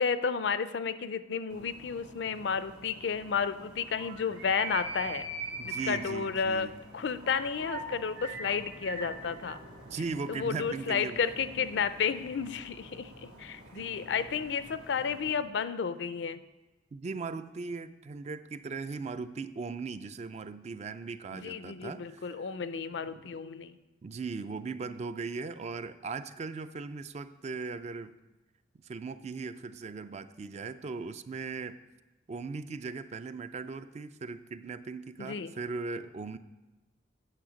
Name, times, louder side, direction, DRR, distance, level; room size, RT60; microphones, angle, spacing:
voice 1, 0.0-5.2 5.6-9.6 10.3-16.4 21.3-23.8 35.2-35.5, left 6 dB, 70° left, 13 dB, 0.4 m, -32 dB
sound 1, 1.5-15.4, right 3 dB, 85° right, 1.5 m, -44 dB
voice 2, 5.6-6.8 9.8-11.2 13.7-13.9 16.9-22.4 23.1-23.2 24.0-28.2 28.8-31.8 32.3-36.4, right 4 dB, 40° right, 12 dB, 0.3 m, -38 dB
8.8 x 6.4 x 5.0 m, 1.1 s
head